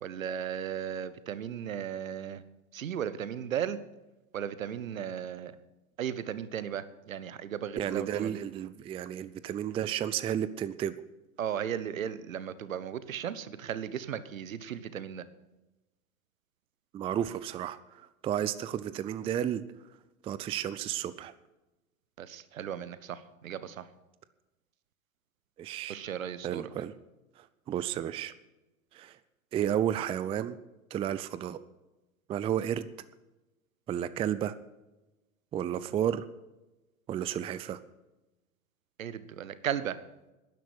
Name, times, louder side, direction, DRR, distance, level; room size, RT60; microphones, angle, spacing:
voice 1, 0.0-2.4 2.7-3.8 4.3-5.6 6.0-8.4 11.4-15.2 22.2-23.9 25.9-26.7 39.0-40.0, right 9 dB, 70° right, 15 dB, 1.1 m, -36 dB
voice 2, 7.8-10.9 16.9-19.6 20.2-21.3 25.6-26.0 26.4-26.9 27.4-28.3 28.9-29.2 29.5-30.6 30.9-31.6 32.3-32.9 33.9-34.5 35.5-36.3 37.1-37.8, right 10 dB, 15° right, 15 dB, 0.4 m, -32 dB
12.0 x 10.5 x 6.2 m, 1.0 s
figure-of-eight pair, 90°, 41 cm